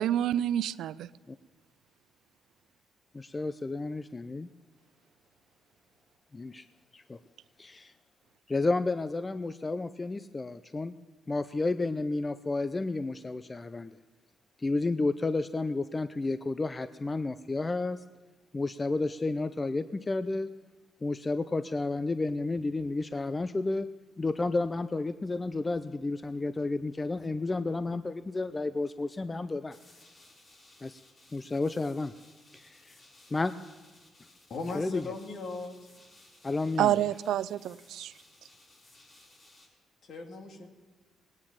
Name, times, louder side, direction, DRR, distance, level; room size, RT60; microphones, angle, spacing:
voice 1, 0.0-1.1 36.8-38.1, right 11 dB, 80° right, 18 dB, 0.4 m, -28 dB
voice 2, 3.1-4.5 6.3-6.6 6.9-7.2 7.6-7.9 8.5-11.0 11.3-14.0 14.6-18.0 18.5-20.5 21.0-23.9 24.2-29.8 30.8-31.0 31.3-32.1 32.5-33.0 33.3-33.5 34.7-35.0 36.4-37.0, left 3 dB, 25° left, 12 dB, 0.5 m, -31 dB
sound 1, 29.7-39.7, left 2 dB, 40° left, 6.5 m, -59 dB
voice 3, 34.5-35.7 40.0-40.7, left 3 dB, 60° left, 3 dB, 2.3 m, -38 dB
19.0 x 9.5 x 7.3 m, 1.2 s
cardioid pair, 90°, 0 cm